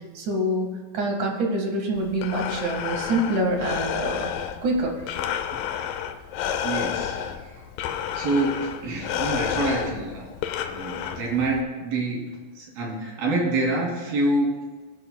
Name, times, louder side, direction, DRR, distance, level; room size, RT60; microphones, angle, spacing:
voice 1, 0.1-0.7 0.9-4.3 4.6-4.9, right 1 dB, 60° right, 1 dB, 3.1 m, -25 dB
Breathing, 2.0-11.6, left 9 dB, 80° left, 2.4 m, -30 dB
voice 2, 6.6-7.2 7.4-7.6 8.1-10.3 10.7-12.2 12.6-14.5, right 2 dB, 90° right, -2 dB, 4.8 m, -26 dB
22.5 x 10.0 x 2.3 m, 1.4 s
omnidirectional pair, 4.1 m